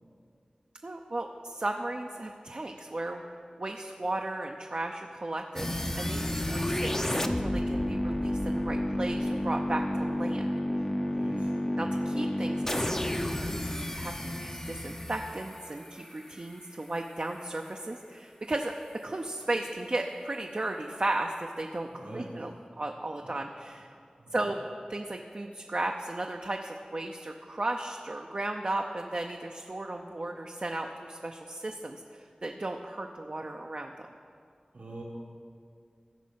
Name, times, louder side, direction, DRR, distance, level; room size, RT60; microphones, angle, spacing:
voice 1, 0.8-10.5 11.8-13.0 13.3-18.8 19.0-22.5 22.8-23.9 24.3-24.6 24.9-33.9, right 2 dB, 50° right, 2 dB, 0.6 m, -35 dB
sound 1, 5.6-16.5, left 1 dB, 20° left, 0.7 m, -31 dB
voice 2, 11.0-11.7 21.9-22.5 23.2-23.3 24.2-24.5 34.7-35.0, right 1 dB, 80° right, -4 dB, 1.5 m, -44 dB
14.5 x 5.3 x 7.5 m, 2.3 s
wide cardioid pair, 55°, 2 cm